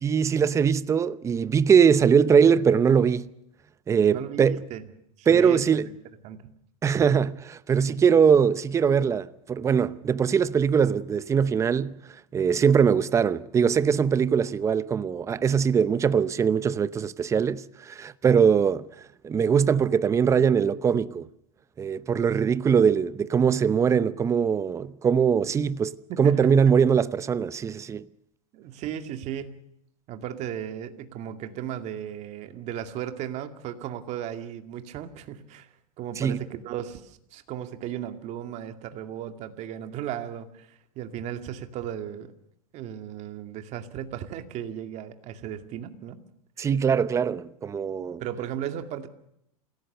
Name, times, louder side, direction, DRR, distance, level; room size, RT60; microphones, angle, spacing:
voice 1, 0.0-3.3 3.9-4.6 5.3-5.9 6.8-12.0 12.3-18.8 19.2-21.3 21.8-28.1 36.2-36.4 46.6-48.2, right 7 dB, 15° right, 0.7 m, -22 dB
voice 2, 4.1-4.8 5.2-6.0 6.2-6.4 7.8-8.0 26.1-26.8 28.5-29.6 30.1-35.7 36.0-42.3 42.7-46.2 46.6-46.7 48.2-49.1, right 10 dB, 40° right, 2.2 m, -35 dB
28.0 x 17.0 x 6.8 m
supercardioid pair, 145°, 18 cm